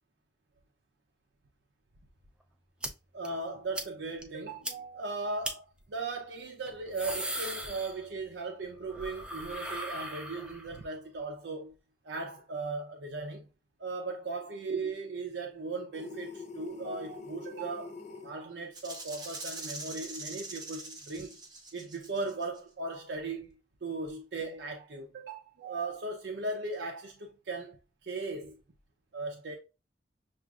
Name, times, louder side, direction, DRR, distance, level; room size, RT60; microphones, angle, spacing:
sound 1, 2.8-2.9 3.2-3.3 3.7-3.9 4.2-4.3 4.6-4.7 5.4-5.5 6.7-8.3 8.6-10.8, right 1 dB, 5° right, 0.4 m, -38 dB
voice 1, 3.1-11.7 12.0-13.5 13.8-18.0 18.2-21.4 21.7-28.6 29.1-29.6, right 3 dB, 65° right, 0.6 m, -38 dB
sound 2, 15.9-18.3, left 4 dB, 40° left, 0.6 m, -44 dB
Rattle (instrument), 18.7-22.6, right 2 dB, 20° right, 0.7 m, -43 dB
6.0 x 2.5 x 2.3 m
head